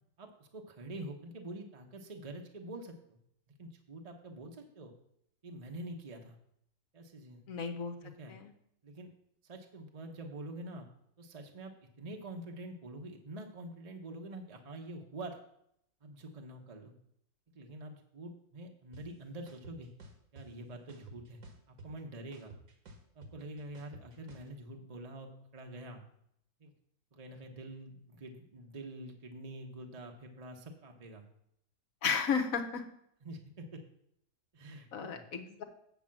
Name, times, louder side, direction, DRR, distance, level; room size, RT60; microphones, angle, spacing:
voice 1, 0.2-3.2 3.6-4.9 5.4-6.4 6.9-7.4 8.0-8.3 8.8-9.1 9.4-10.9 11.2-15.4 16.0-16.9 17.5-19.9 20.3-21.4 21.7-22.5 23.1-26.0 26.6-26.7 27.1-31.2 33.2-33.8 34.5-35.2, right 1 dB, 30° right, 2 dB, 0.8 m, -46 dB
voice 2, 7.5-7.9 8.3-8.5 32.0-32.8 34.9-35.6, left 6 dB, 65° left, 5 dB, 1.4 m, -33 dB
sound 1, 18.9-19.0 19.5-20.4 20.9-22.0 22.3-24.5, right 2 dB, 70° right, 1.7 m, -52 dB
8.2 x 4.9 x 7.5 m, 0.73 s
omnidirectional pair, 1.6 m